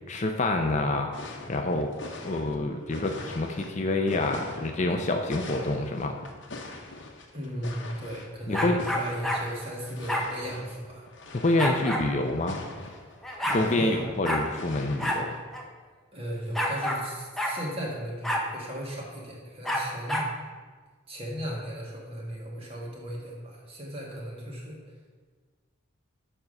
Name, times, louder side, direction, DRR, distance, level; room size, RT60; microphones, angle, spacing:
voice 1, 0.1-1.1 1.5-1.9 2.2-6.2 8.5-8.8 11.3-12.6 13.5-15.4, left 2 dB, 35° left, 4 dB, 0.5 m, -27 dB
sound 1, 1.1-15.4, left 2 dB, 55° left, 1.0 m, -43 dB
voice 2, 7.3-11.0 13.4-14.1 16.1-20.3 21.1-24.8, equal, 25° right, -2 dB, 1.7 m, -36 dB
sound 2, 8.5-9.4 10.1-10.3 11.6-12.1 12.9-13.0 13.2-13.6 14.2-14.4 15.0-15.2 15.5-15.6 16.5-17.0 17.4-17.6 18.2-18.5 19.6-20.3, equal, ahead, 0.8 m, -28 dB
7.1 x 5.6 x 6.4 m, 1.4 s
head